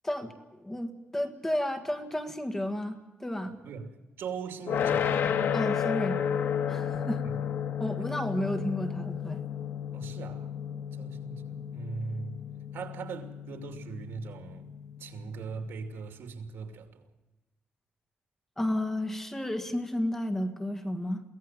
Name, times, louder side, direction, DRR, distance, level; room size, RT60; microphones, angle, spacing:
voice 1, 0.6-3.6 5.5-6.2 6.7-7.2 7.8-9.4 18.6-21.2, left 1 dB, 10° left, 1.7 m, -32 dB
voice 2, 4.2-5.2 9.9-10.5 10.9-12.4 12.7-14.7 15.0-17.1, right 5 dB, 75° right, 2.6 m, -40 dB
sound 1, 4.7-15.6, left 8 dB, 70° left, 1.4 m, -32 dB
23.0 x 17.0 x 7.5 m
wide cardioid pair, 165°, 4 cm